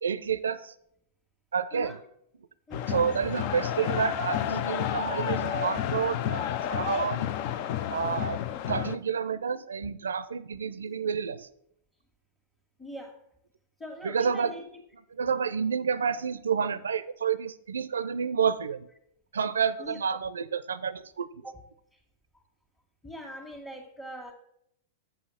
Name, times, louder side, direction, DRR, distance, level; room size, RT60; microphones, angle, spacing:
voice 1, 0.0-0.7 1.5-2.0 2.9-7.3 7.9-8.4 8.7-11.5 14.0-14.5 15.1-18.9 19.3-21.3, right 6 dB, 85° right, 16 dB, 0.4 m, -29 dB
sound 1, 2.7-9.0, left 11 dB, 50° left, 0.5 m, -31 dB
voice 2, 12.8-13.2 13.8-14.6 19.8-20.0 21.4-21.6 23.0-24.3, equal, 10° left, -2 dB, 1.5 m, -42 dB
7.3 x 5.6 x 6.2 m, 0.73 s
hypercardioid pair, 115°, 0 cm